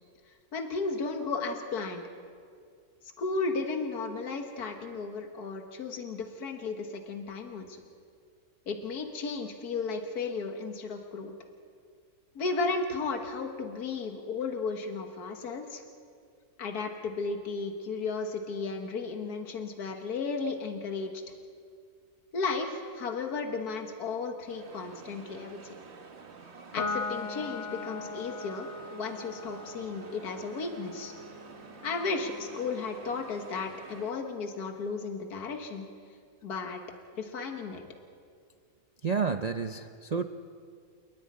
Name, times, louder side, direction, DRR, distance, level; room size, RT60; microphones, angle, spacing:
voice 1, 0.5-2.0 3.2-7.8 8.7-11.3 12.4-15.8 16.6-21.1 22.3-25.7 26.7-31.1 31.8-35.9 36.4-36.8 37.2-37.8, left 4 dB, 80° left, 4 dB, 1.9 m, -34 dB
sound 1, 24.4-34.1, right 4 dB, 45° right, 1.5 m, -49 dB
Piano, 26.8-33.5, left 3 dB, 50° left, 1.4 m, -40 dB
voice 2, 39.0-40.2, right 5 dB, 65° right, 7 dB, 0.4 m, -30 dB
30.0 x 10.0 x 9.6 m, 2.2 s
omnidirectional pair, 1.6 m